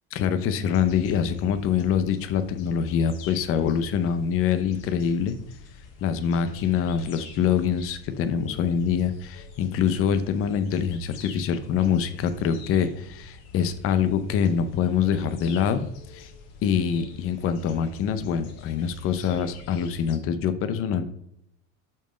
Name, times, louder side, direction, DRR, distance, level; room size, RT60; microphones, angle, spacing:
voice 1, 0.1-5.4 6.0-16.3 16.6-21.0, left 7 dB, 40° left, 10 dB, 0.7 m, -25 dB
sound 1, 0.7-20.2, left 5 dB, 75° left, 1.4 m, -47 dB
6.1 x 4.6 x 5.0 m, 0.76 s
supercardioid pair, 135°, 34 cm